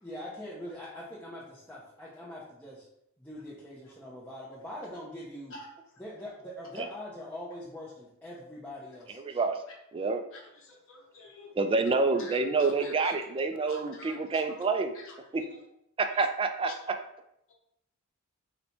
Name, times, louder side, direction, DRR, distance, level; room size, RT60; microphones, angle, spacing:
voice 1, 0.0-2.9 3.2-5.6 6.0-9.4, left 1 dB, 5° left, -7 dB, 0.6 m, -43 dB
voice 2, 9.3-9.6 9.9-10.2 11.6-14.9 15.3-15.4 16.0-17.0, right 3 dB, 25° right, 7 dB, 0.3 m, -28 dB
voice 3, 10.7-11.5 12.2-13.1 13.6-14.1, left 2 dB, 65° left, 0 dB, 0.6 m, -47 dB
4.2 x 2.2 x 4.1 m, 0.80 s
head